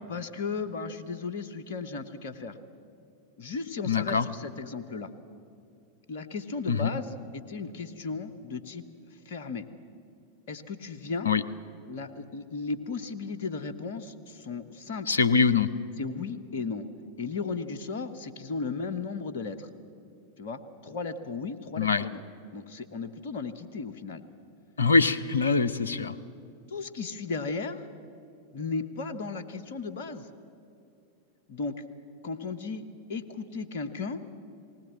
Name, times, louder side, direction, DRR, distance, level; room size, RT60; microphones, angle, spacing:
voice 1, 0.1-2.6 3.4-5.1 6.1-8.8 9.2-9.7 10.5-11.3 11.9-15.1 16.0-16.8 17.2-19.7 20.4-22.2 22.5-24.2 26.7-27.8 28.5-30.3 31.5-31.7 32.2-32.8 33.1-34.2, left 4 dB, 55° left, 11 dB, 1.0 m, -35 dB
voice 2, 3.8-4.3 6.7-7.0 11.2-11.4 15.1-15.7 21.8-22.0 24.8-26.1, left 5 dB, 75° left, 15 dB, 0.7 m, -23 dB
19.5 x 19.0 x 7.5 m, 2.5 s
figure-of-eight pair, 90°, 0 cm